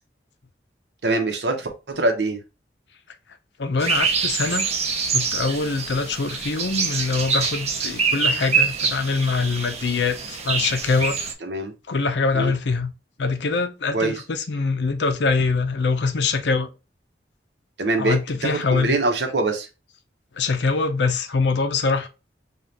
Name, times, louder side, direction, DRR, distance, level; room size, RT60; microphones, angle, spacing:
voice 1, 1.0-1.7 2.0-2.4 11.4-11.7 12.3-12.5 13.9-14.1 17.8-18.2 18.4-19.7, right 2 dB, 70° right, 0.8 m, -23 dB
voice 2, 3.6-4.7 5.1-11.2 11.9-12.9 13.2-16.7 18.0-19.0 20.3-22.1, left 4 dB, 75° left, 0.6 m, -23 dB
sound 1, 3.8-11.3, right 5 dB, 40° right, 0.7 m, -25 dB
5.1 x 2.4 x 2.8 m
head